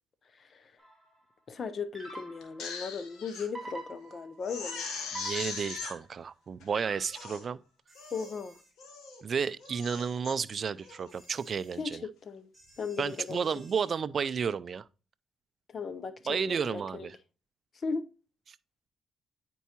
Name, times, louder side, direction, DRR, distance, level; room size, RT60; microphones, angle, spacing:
voice 1, 0.3-0.7 1.5-4.8 8.1-8.6 11.7-13.7 15.7-17.1 17.7-18.1, left 5 dB, 45° left, 0.6 m, -37 dB
sound 1, 0.8-1.1 1.9-2.7 3.5-4.4 5.1-6.0 6.7-7.4, right 2 dB, 15° right, 4.1 m, -44 dB
Crying sobbing, 2.4-3.5 3.9-4.0 4.4-5.9 6.6-6.7 7.0-7.5 8.0-8.4 8.8-9.2 9.6-10.3 10.8-11.1, left 5 dB, 80° left, 1.3 m, -40 dB
voice 2, 5.1-7.6 9.2-12.0 13.0-14.8 16.3-17.1, right 6 dB, 50° right, 0.3 m, -32 dB
sound 2, 7.9-8.7 11.1-11.8 12.5-13.9, right 1 dB, 10° left, 3.4 m, -58 dB
9.3 x 4.5 x 2.8 m
cardioid pair, 90°, 0 cm